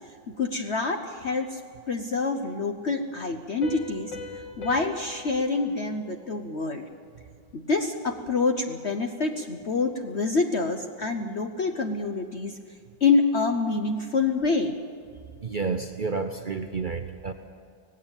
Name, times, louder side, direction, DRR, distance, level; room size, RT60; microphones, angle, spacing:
voice 1, 0.3-1.6 1.9-4.1 4.6-6.8 7.5-12.6 13.0-14.7, left 4 dB, 50° left, 5 dB, 0.9 m, -26 dB
Piano, 3.6-7.0, left 3 dB, 75° left, 3.2 m, -42 dB
voice 2, 15.4-17.3, right 4 dB, 75° right, 6 dB, 0.4 m, -30 dB
18.5 x 16.5 x 8.9 m, 2.2 s
omnidirectional pair, 2.0 m